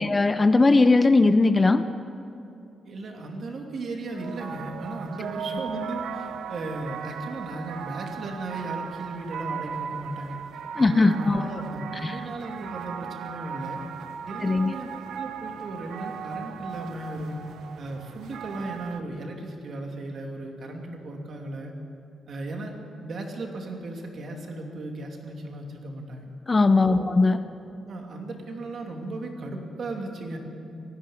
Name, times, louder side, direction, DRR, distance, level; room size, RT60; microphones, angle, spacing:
voice 1, 0.0-1.8 10.8-11.6 12.0-12.2 14.4-14.7 26.5-27.4, left 3 dB, 20° left, 10 dB, 0.5 m, -19 dB
voice 2, 2.8-10.4 10.8-13.8 14.3-14.9 15.1-17.3 17.8-21.7 22.3-22.7 23.0-26.3 26.9-27.1 27.9-30.4, right 2 dB, 45° right, 2 dB, 2.7 m, -36 dB
sound 1, 4.1-19.0, right 7 dB, 75° right, 1.0 m, -37 dB
18.0 x 15.0 x 9.5 m, 2.7 s
wide cardioid pair, 170°, 0 cm